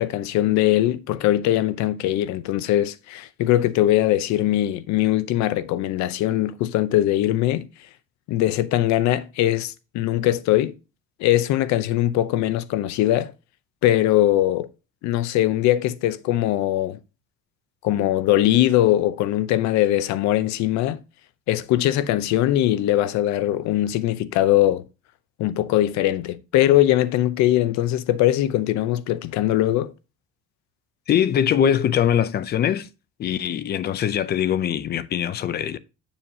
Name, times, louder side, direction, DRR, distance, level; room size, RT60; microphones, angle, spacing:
voice 1, 0.0-7.7 8.3-10.7 11.2-13.3 13.8-14.7 15.0-17.0 17.8-21.0 21.5-24.8 25.4-29.9, left 13 dB, 65° left, 0.7 m, -21 dB
voice 2, 31.1-32.9 33.2-35.8, left 9 dB, 35° left, 0.5 m, -22 dB
7.3 x 7.0 x 2.7 m
cardioid pair, 155°, 31 cm